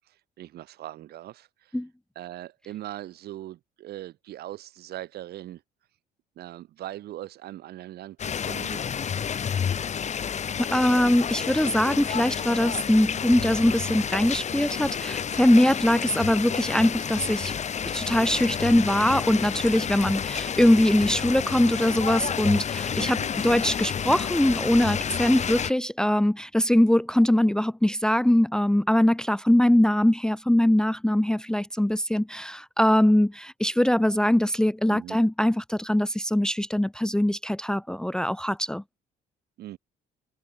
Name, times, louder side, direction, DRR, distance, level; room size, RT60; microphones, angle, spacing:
voice 1, 0.4-1.7 2.1-5.6 6.4-8.9 23.0-23.3 34.9-35.2 39.6-39.8, right 14 dB, 70° right, 5.0 m, -40 dB
sound 1, 8.2-25.7, left 7 dB, 45° left, 7.2 m, -30 dB
voice 2, 10.6-17.5 17.9-38.8, left 1 dB, 5° left, 0.7 m, -22 dB
cardioid pair, 110°, 17 cm